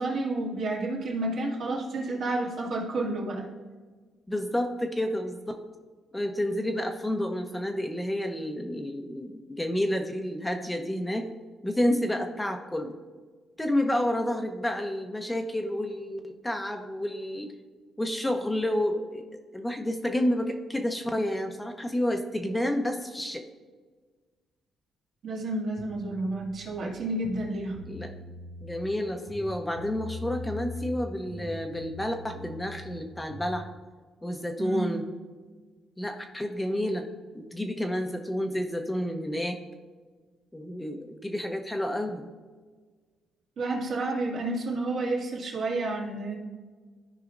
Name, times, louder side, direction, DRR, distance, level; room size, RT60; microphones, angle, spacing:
voice 1, 0.0-3.5 25.2-27.8 34.6-35.1 43.6-46.4, right 2 dB, 65° right, -3 dB, 2.1 m, -30 dB
voice 2, 4.3-5.6 6.1-11.3 11.6-12.9 13.6-17.5 18.0-19.2 19.5-23.4 27.9-28.1 28.6-33.7 34.2-35.0 36.0-37.0 37.3-39.6 40.5-42.3, left 1 dB, 10° left, 4 dB, 0.7 m, -30 dB
sound 1, 25.8-26.8 27.2-29.0 29.3-31.0 31.3-33.6, left 1 dB, 85° right, 0.7 m, -42 dB
14.0 x 4.9 x 2.5 m, 1.4 s
cardioid pair, 90°, 0 cm